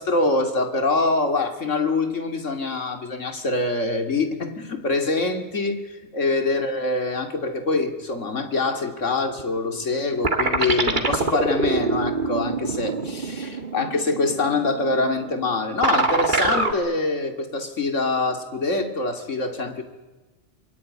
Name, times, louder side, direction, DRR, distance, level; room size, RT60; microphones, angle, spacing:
voice 1, 0.0-19.8, left 3 dB, 90° left, 6 dB, 2.8 m, -25 dB
sound 1, 9.3-10.0 10.2-16.7, right 3 dB, 40° right, 2.2 m, -25 dB
26.0 x 23.5 x 9.7 m, 1.2 s
omnidirectional pair, 1.2 m